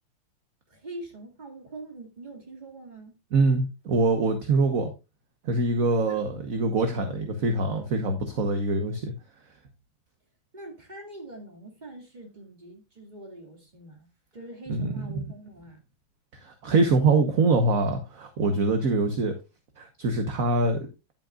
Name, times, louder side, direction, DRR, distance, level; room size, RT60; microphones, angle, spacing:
voice 1, 0.7-3.2 6.1-6.2 10.5-15.8, right 2 dB, 20° right, 2.4 m, -43 dB
voice 2, 3.3-4.9 5.4-9.1 14.7-14.9 16.3-19.3 19.8-20.9, right 3 dB, 50° right, 1.3 m, -24 dB
10.5 x 9.0 x 2.4 m
omnidirectional pair, 2.2 m